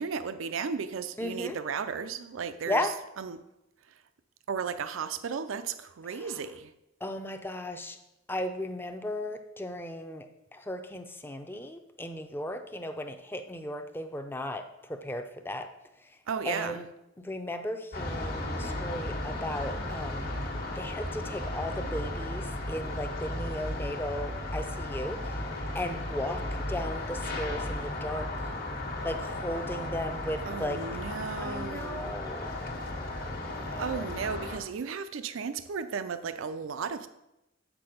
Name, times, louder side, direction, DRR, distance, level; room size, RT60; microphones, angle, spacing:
voice 1, 0.0-3.4 4.5-6.7 16.3-16.8 30.5-32.2 33.8-37.1, right 6 dB, 75° right, 11 dB, 0.4 m, -35 dB
voice 2, 1.2-1.6 2.7-2.9 6.1-6.3 7.0-8.0 8.3-10.3 10.5-15.7 16.4-16.8 17.2-20.3 20.7-25.4 25.7-26.4 26.7-28.3 29.0-30.8 31.4-32.6 33.5-34.1, left 1 dB, 10° left, 7 dB, 0.5 m, -36 dB
sound 1, 17.9-34.6, left 1 dB, 50° left, 1.3 m, -35 dB
7.6 x 6.1 x 5.0 m, 0.91 s
head